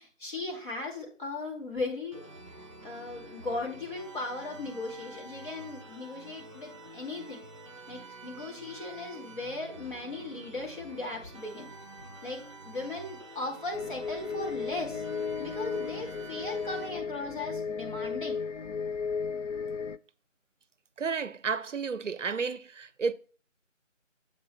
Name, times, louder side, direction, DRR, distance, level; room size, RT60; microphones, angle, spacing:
voice 1, 0.0-2.2 2.8-7.4 7.9-11.7 12.2-15.0 15.4-18.4, left 2 dB, 40° left, 2.4 m, -37 dB
sound 1, 2.1-16.9, right 2 dB, 25° right, 1.0 m, -48 dB
sound 2, 13.7-20.0, left 5 dB, 70° left, 0.5 m, -35 dB
voice 2, 21.0-23.1, right 5 dB, 70° right, 0.6 m, -32 dB
7.4 x 4.2 x 5.6 m
figure-of-eight pair, 170°, 39 cm